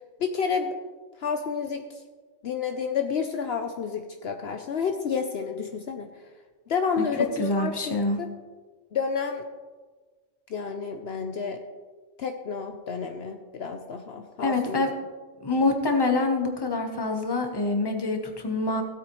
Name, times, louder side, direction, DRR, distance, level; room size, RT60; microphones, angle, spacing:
voice 1, 0.2-0.7 1.2-1.8 2.4-6.1 6.7-8.3 8.9-9.4 10.5-11.6 12.2-14.9, left 6 dB, 65° left, 6 dB, 0.9 m, -30 dB
voice 2, 7.4-8.2 14.4-14.9 15.4-18.8, left 3 dB, 20° left, 4 dB, 1.0 m, -25 dB
16.0 x 8.2 x 3.1 m, 1.4 s
omnidirectional pair, 1.2 m